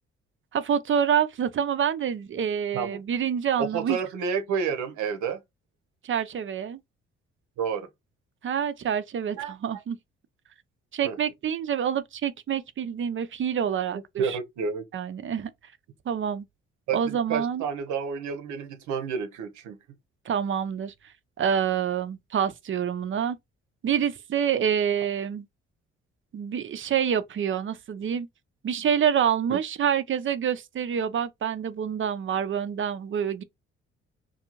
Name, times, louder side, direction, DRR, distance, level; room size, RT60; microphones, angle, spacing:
voice 1, 0.5-4.0 6.0-6.8 8.4-10.0 10.9-14.4 14.9-15.5 16.1-16.5 16.9-17.7 20.3-20.9 21.4-23.4 23.8-25.5 26.3-28.3 28.6-33.4, right 8 dB, 45° right, 0.5 m, -27 dB
voice 2, 3.6-5.4 7.6-7.9 9.4-9.5 11.0-11.2 14.2-14.8 16.9-19.8 29.5-29.6, right 6 dB, 75° right, 0.8 m, -30 dB
2.5 x 2.3 x 3.0 m
supercardioid pair, 55°, 29 cm